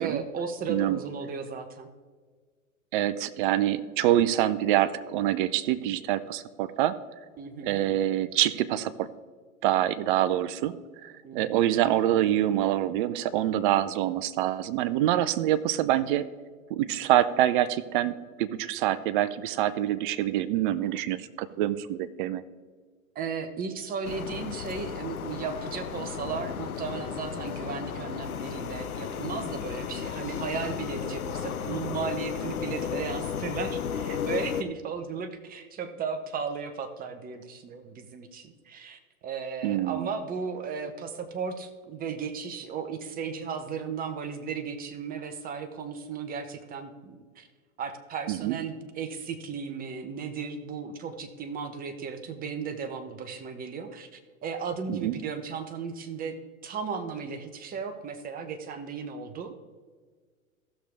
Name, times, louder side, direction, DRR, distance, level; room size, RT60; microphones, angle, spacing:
voice 1, 0.0-1.9 7.4-7.8 11.2-11.5 23.1-47.5 47.8-56.3 56.6-59.5, right 5 dB, 20° right, 8 dB, 1.0 m, -35 dB
voice 2, 0.7-1.0 2.9-6.9 7.7-9.1 9.6-10.8 11.0-16.2 16.7-22.4 39.6-40.1 48.3-48.6 54.9-55.1, right 12 dB, 40° right, 15 dB, 0.6 m, -26 dB
sound 1, 24.0-34.6, left 8 dB, 85° left, 0.7 m, -34 dB
15.5 x 6.6 x 3.4 m, 1.5 s
hypercardioid pair, 110°, 42 cm